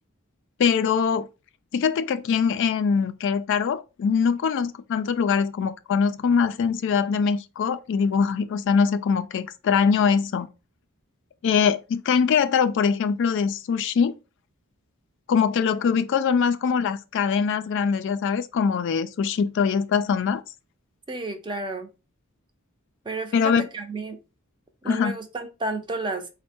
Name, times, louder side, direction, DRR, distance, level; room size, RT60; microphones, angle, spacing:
voice 1, 0.6-1.3 1.7-10.5 11.4-14.1 15.3-20.4 23.3-23.7 24.9-25.1, left 6 dB, 55° left, 0.3 m, -22 dB
voice 2, 21.1-21.9 23.0-24.2 24.8-26.3, right 2 dB, 20° right, 0.6 m, -31 dB
4.3 x 2.1 x 4.3 m
head